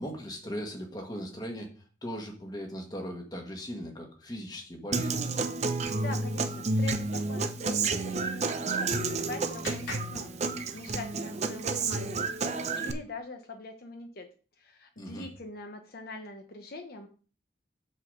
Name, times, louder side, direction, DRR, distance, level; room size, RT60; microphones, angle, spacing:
voice 1, 0.0-5.2 15.0-15.3, equal, 20° left, 2 dB, 1.5 m, -39 dB
Human voice / Acoustic guitar, 4.9-12.9, right 3 dB, 35° right, 0.6 m, -30 dB
voice 2, 6.0-14.3 14.6-17.1, left 2 dB, 55° left, 4 dB, 0.9 m, -43 dB
Clapping, 8.5-11.1, left 3 dB, 75° left, 2.8 m, -46 dB
8.0 x 3.9 x 6.4 m, 0.39 s
head